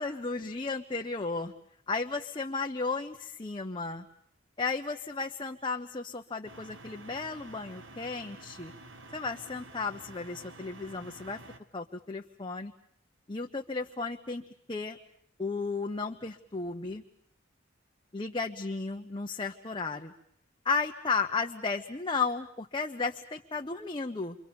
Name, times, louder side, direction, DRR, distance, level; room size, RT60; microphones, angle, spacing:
voice 1, 0.0-1.5 1.9-4.1 4.6-8.7 9.1-11.4 11.7-12.7 13.3-15.0 15.4-17.0 18.1-20.1 20.6-24.4, left 4 dB, 25° left, 3 dB, 1.0 m, -34 dB
sound 1, 6.4-11.6, right 2 dB, 70° right, 1.8 m, -50 dB
28.5 x 25.0 x 7.0 m, 0.70 s
head